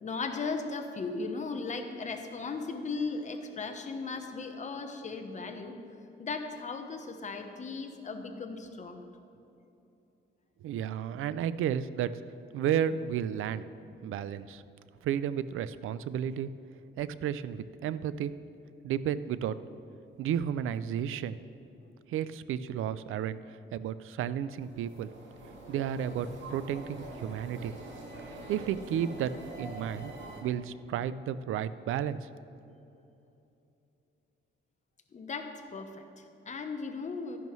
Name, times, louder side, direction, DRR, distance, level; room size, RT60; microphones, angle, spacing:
voice 1, 0.0-5.7 6.2-9.0 35.1-37.4, left 4 dB, 35° left, 5 dB, 0.9 m, -37 dB
voice 2, 10.6-12.1 12.5-13.6 14.0-14.6 15.0-16.5 17.0-18.3 18.8-19.6 20.2-21.4 22.1-25.1 25.7-27.7 28.5-29.3 29.6-30.1 30.4-32.3, right 9 dB, 80° right, 15 dB, 0.4 m, -32 dB
sound 1, 24.5-30.4, right 2 dB, 65° right, 1.9 m, -45 dB
12.5 x 10.5 x 3.1 m, 2.8 s
cardioid pair, 130°, 21 cm